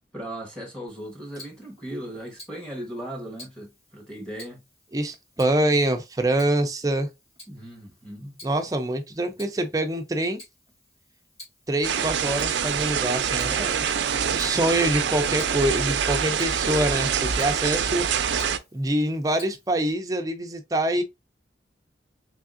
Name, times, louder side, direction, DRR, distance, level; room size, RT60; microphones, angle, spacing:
voice 1, 0.1-4.6 7.5-8.4, right 1 dB, 5° left, 1.1 m, -37 dB
Tick-tock, 0.9-19.9, left 1 dB, 35° left, 1.7 m, -51 dB
voice 2, 4.9-7.1 8.4-10.4 11.7-13.8 14.3-18.0 18.7-21.0, right 1 dB, 20° right, 0.4 m, -25 dB
sound 1, 11.8-18.6, right 7 dB, 80° right, 0.4 m, -25 dB
3.5 x 3.4 x 2.4 m
head